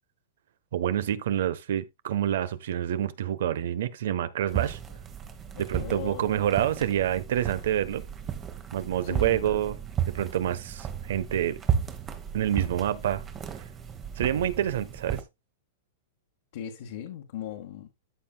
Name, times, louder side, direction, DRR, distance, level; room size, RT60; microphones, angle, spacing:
voice 1, 0.7-4.8 5.6-8.0 8.7-9.8 10.1-11.6 12.3-13.2 14.2-15.2, right 10 dB, 70° right, 1.0 m, -27 dB
sound 1, 4.5-15.2, right 9 dB, 20° right, 1.2 m, -34 dB
voice 2, 5.5-6.5 9.0-9.6 16.5-17.9, left 10 dB, 60° left, 1.8 m, -39 dB
13.5 x 5.8 x 2.3 m
supercardioid pair, 160°, 0 cm